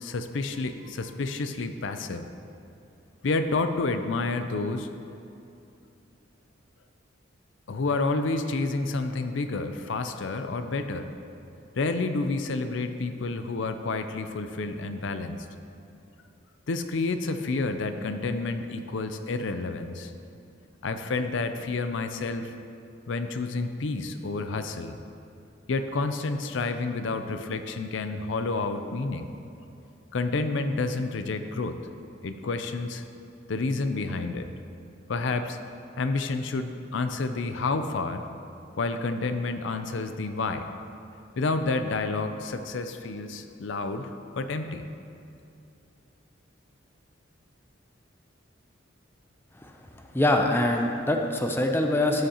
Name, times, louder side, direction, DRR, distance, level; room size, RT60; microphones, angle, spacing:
voice 1, 0.0-2.3 3.2-4.9 7.7-11.1 11.8-15.5 16.7-20.1 20.8-22.5 23.1-25.0 25.7-29.3 30.1-31.8 32.2-33.0 33.5-34.5 35.1-35.6 36.0-38.2 38.8-40.7 41.4-44.1 44.4-44.8, left 3 dB, 70° left, 8 dB, 0.5 m, -29 dB
voice 2, 50.1-52.3, left 1 dB, 10° left, 3 dB, 0.6 m, -24 dB
13.0 x 8.0 x 2.9 m, 2.7 s
head